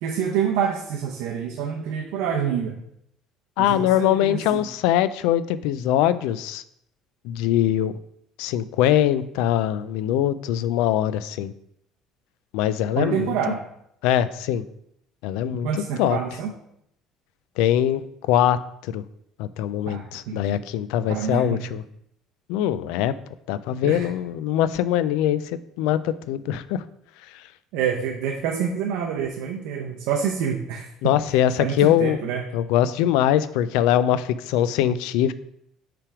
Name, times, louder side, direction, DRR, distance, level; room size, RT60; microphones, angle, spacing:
voice 1, 0.0-2.8 3.6-4.6 13.0-13.6 15.6-16.5 19.9-20.6 21.1-21.6 23.8-24.1 27.7-30.9 31.6-32.4, right 7 dB, 80° right, 0 dB, 0.7 m, -27 dB
voice 2, 3.6-6.6 7.2-7.9 8.4-11.5 12.5-13.4 14.0-14.6 15.2-15.7 16.0-16.2 17.6-18.6 18.9-19.0 19.4-21.8 22.5-23.1 23.5-25.4 25.8-26.8 31.0-32.2 32.5-35.3, left 11 dB, 85° left, 15 dB, 0.3 m, -22 dB
5.8 x 3.4 x 4.8 m, 0.75 s
cardioid pair, 165°, 0 cm